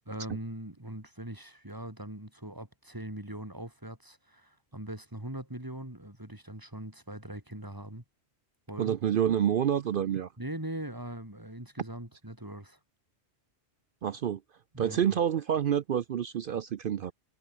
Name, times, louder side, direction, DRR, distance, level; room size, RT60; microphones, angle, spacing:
voice 1, 0.0-8.0 8.7-8.9 10.4-12.8 14.7-15.1, right 1 dB, 15° right, 4.3 m, -41 dB
voice 2, 8.8-10.3 14.0-14.4 14.8-17.1, right 9 dB, 60° right, 0.7 m, -28 dB
omnidirectional pair, 1.2 m